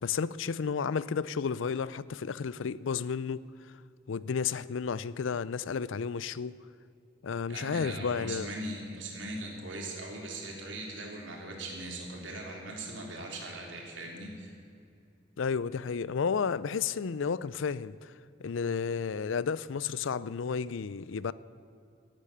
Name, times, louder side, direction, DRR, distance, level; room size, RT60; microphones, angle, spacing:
voice 1, 0.0-3.4 4.1-6.5 7.2-8.5 15.4-18.1 18.4-21.3, left 6 dB, 75° left, 0.5 m, -32 dB
voice 2, 7.5-14.5, right 2 dB, 70° right, 3.6 m, -40 dB
13.5 x 12.0 x 8.6 m
head